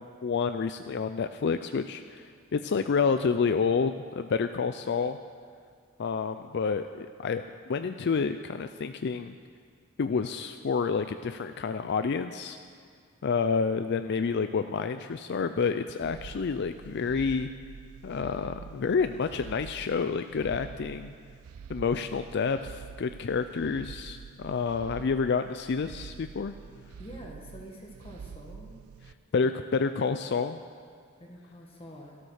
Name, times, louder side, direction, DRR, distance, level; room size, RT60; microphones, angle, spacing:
voice 1, 0.0-5.2 6.0-9.4 10.0-12.6 13.2-17.5 18.0-21.1 21.7-26.5 29.3-30.6, left 5 dB, 50° left, 9 dB, 0.4 m, -29 dB
sound 1, 16.0-29.1, right 6 dB, 75° right, 0.4 m, -46 dB
voice 2, 27.0-28.7 31.2-32.2, equal, 25° left, -1 dB, 1.5 m, -46 dB
13.0 x 13.0 x 6.4 m, 2.3 s
head